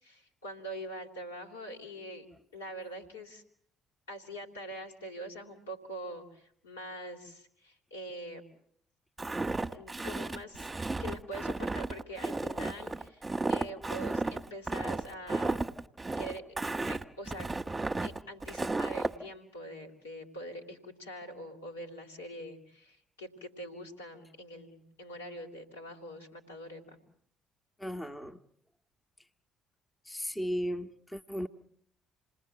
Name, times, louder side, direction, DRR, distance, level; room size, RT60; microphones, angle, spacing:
voice 1, 0.0-2.3 2.5-3.4 4.1-8.4 9.7-10.7 11.0-13.2 13.5-15.7 16.2-16.4 16.9-17.5 18.0-27.0, equal, 85° left, 0 dB, 3.3 m, -44 dB
Walk footsteps, 9.2-19.1, right 2 dB, 15° right, 1.3 m, -33 dB
voice 2, 27.8-28.4 30.1-31.5, equal, 10° left, 6 dB, 1.3 m, -35 dB
28.5 x 20.0 x 7.9 m, 0.66 s
figure-of-eight pair, 50°, 0 cm